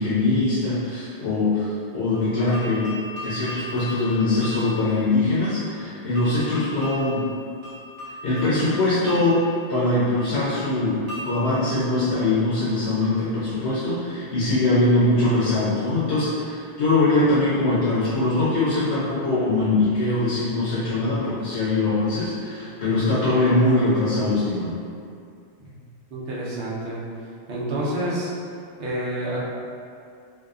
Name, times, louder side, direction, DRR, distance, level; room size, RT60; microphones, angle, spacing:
voice 1, 0.0-2.9 3.2-7.3 8.2-24.7, left 2 dB, 75° left, -10 dB, 0.8 m, -22 dB
sound 1, 2.1-12.9, left 1 dB, 85° right, 1.1 m, -39 dB
voice 2, 26.1-27.0 27.5-28.3 28.8-29.4, right 1 dB, 65° right, -6 dB, 0.8 m, -28 dB
2.6 x 2.3 x 2.3 m, 2.4 s
omnidirectional pair, 1.2 m